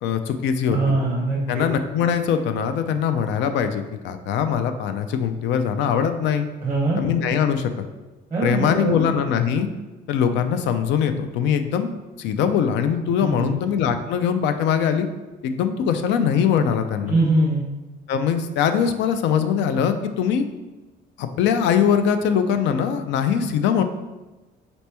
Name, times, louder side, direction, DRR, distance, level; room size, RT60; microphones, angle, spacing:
voice 1, 0.0-0.9 1.5-6.5 7.0-7.7 8.4-9.7 10.1-11.9 12.2-15.1 15.4-17.2 18.1-20.4 21.2-23.8, left 7 dB, 70° left, 8 dB, 0.4 m, -22 dB
voice 2, 0.7-1.7 6.6-7.0 8.3-8.9 13.2-13.5 17.1-17.6, right 2 dB, 15° right, -3 dB, 0.7 m, -22 dB
4.0 x 2.9 x 3.3 m, 1.1 s
cardioid pair, 170°, 19 cm